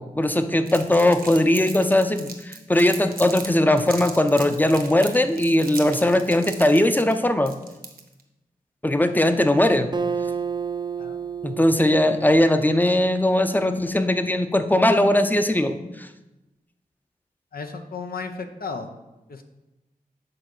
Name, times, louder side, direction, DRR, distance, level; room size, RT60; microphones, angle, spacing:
voice 1, 0.0-7.5 8.8-9.9 11.4-16.1, left 1 dB, 10° left, 8 dB, 0.6 m, -20 dB
Crumpling crinkling, 0.7-3.5 3.8-8.2, right 4 dB, 80° right, 1.0 m, -38 dB
Acoustic guitar, 9.9-13.5, right 6 dB, 30° right, 0.4 m, -31 dB
voice 2, 17.5-18.9 19.3-19.4, left 4 dB, 75° left, 6 dB, 0.8 m, -34 dB
7.8 x 3.9 x 6.1 m, 1.0 s
cardioid pair, 50°, 15 cm